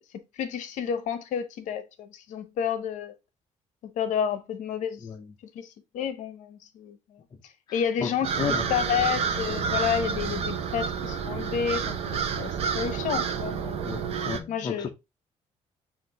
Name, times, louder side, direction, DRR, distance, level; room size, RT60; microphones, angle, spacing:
voice 1, 0.4-3.1 4.0-5.0 5.5-7.0 7.7-13.8 14.5-14.9, left 8 dB, 75° left, 0.7 m, -30 dB
voice 2, 7.7-8.1 8.4-8.7 13.8-14.9, left 5 dB, 35° left, 0.6 m, -33 dB
sound 1, 8.2-14.4, right 6 dB, 55° right, 0.6 m, -29 dB
5.9 x 2.5 x 3.3 m
cardioid pair, 155°, 13 cm